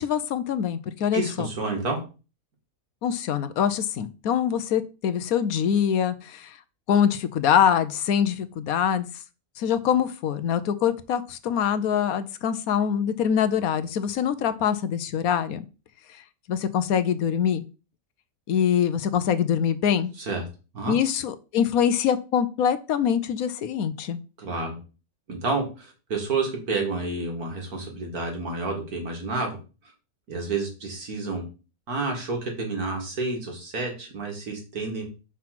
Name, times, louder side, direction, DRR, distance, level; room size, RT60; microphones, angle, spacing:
voice 1, 0.0-1.5 3.0-6.5 6.9-9.1 9.6-15.6 16.5-17.7 18.5-20.1 20.9-24.2, left 8 dB, 75° left, 12 dB, 1.2 m, -24 dB
voice 2, 1.1-2.0 20.2-20.4 20.7-20.9 24.4-24.8 25.3-29.6 30.3-31.4 31.9-35.0, right 3 dB, 85° right, 2 dB, 2.6 m, -29 dB
5.8 x 4.9 x 6.0 m, 0.33 s
omnidirectional pair, 1.5 m